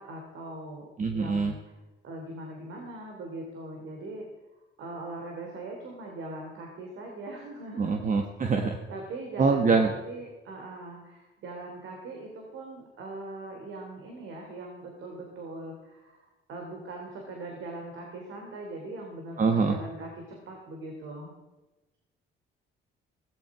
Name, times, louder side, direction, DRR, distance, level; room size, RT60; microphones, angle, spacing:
voice 1, 0.0-1.6 2.0-4.2 4.8-8.1 8.9-21.3, right 2 dB, 75° right, 1 dB, 3.1 m, -41 dB
voice 2, 1.0-1.5 7.8-8.8 9.4-9.9 19.4-19.8, right 4 dB, 40° right, 4 dB, 1.5 m, -24 dB
16.5 x 14.5 x 4.9 m, 1.1 s
cardioid pair, 90°, 20 cm